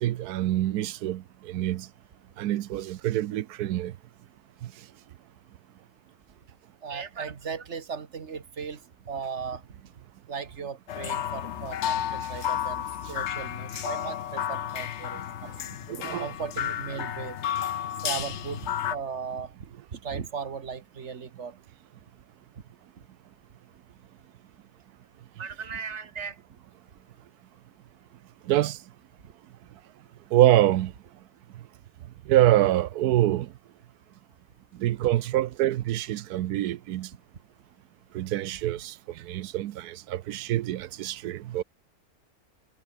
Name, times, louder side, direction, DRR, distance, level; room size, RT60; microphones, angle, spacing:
voice 1, 0.0-1.9 2.4-3.9 4.6-4.7 12.2-12.4 13.0-13.1 13.7-13.8 15.4-15.5 15.9-16.3 28.4-28.8 30.3-30.9 32.3-33.5 34.7-37.1 38.1-41.6, right 13 dB, 90° right, 1.2 m, -25 dB
voice 2, 6.8-9.7 9.9-10.0 10.3-15.5 16.2-17.4 18.0-21.6 25.4-26.4 29.2-29.3, right 6 dB, 50° right, 1.7 m, -37 dB
sound 1, 10.9-18.9, left 10 dB, 55° left, 0.9 m, -32 dB
omnidirectional pair, 1.6 m